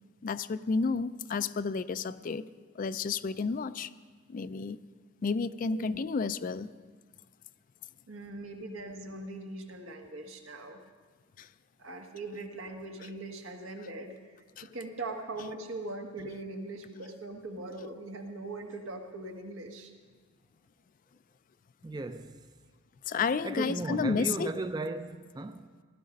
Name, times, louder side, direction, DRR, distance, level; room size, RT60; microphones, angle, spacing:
voice 1, 0.2-2.5 2.8-3.9 4.3-4.8 5.2-6.7 11.4-11.5 14.6-14.7 23.1-24.5, left 4 dB, 40° left, 0.4 m, -31 dB
voice 2, 5.6-6.0 8.1-10.8 11.8-14.2 14.6-19.9, right 2 dB, 80° right, 1.6 m, -41 dB
voice 3, 21.8-22.4 23.4-25.7, right 2 dB, 20° right, 0.4 m, -35 dB
16.5 x 12.0 x 5.2 m
head